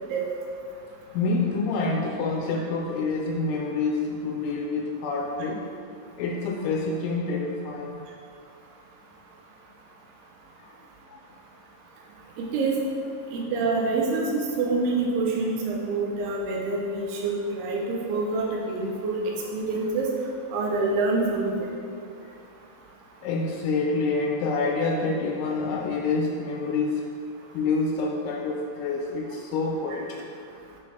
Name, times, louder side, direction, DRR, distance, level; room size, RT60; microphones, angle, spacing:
voice 1, 1.1-5.6 6.2-8.0 10.6-10.8 11.1-11.2 22.2-22.3 23.2-27.0 27.5-30.2, left 3 dB, 85° left, 1 dB, 2.8 m, -27 dB
voice 2, 12.4-12.8 13.3-17.8 18.1-19.2 19.5-20.1 20.5-21.6, right 3 dB, 85° right, -2 dB, 2.3 m, -26 dB
8.3 x 6.7 x 2.8 m, 2.4 s
omnidirectional pair, 5.6 m